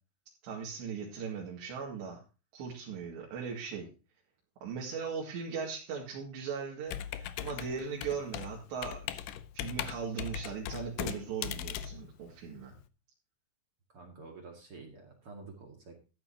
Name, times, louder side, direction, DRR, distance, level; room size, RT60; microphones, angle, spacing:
voice 1, 0.4-2.2 2.5-3.9 4.6-12.7, right 6 dB, 65° right, -2 dB, 4.2 m, -39 dB
Computer keyboard, 6.9-12.8, left 11 dB, 80° left, 2.3 m, -39 dB
voice 2, 13.9-16.0, right 3 dB, 40° right, 2 dB, 2.1 m, -49 dB
14.0 x 11.0 x 2.9 m, 0.32 s
omnidirectional pair, 5.5 m